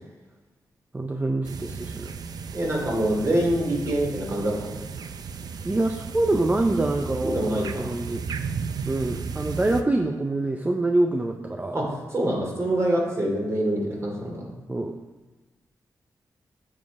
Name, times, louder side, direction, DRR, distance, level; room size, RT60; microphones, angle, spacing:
voice 1, 0.9-2.1 5.6-8.2 8.9-11.8 14.7-15.0, right 2 dB, 20° right, 4 dB, 0.5 m, -25 dB
sound 1, 1.4-9.8, right 5 dB, 70° right, 0.5 m, -34 dB
voice 2, 2.5-4.8 7.2-7.9 11.7-11.8 12.1-14.5, right 1 dB, 40° right, -1 dB, 2.6 m, -25 dB
7.4 x 5.4 x 4.7 m, 1.2 s
cardioid pair, 70°, 7 cm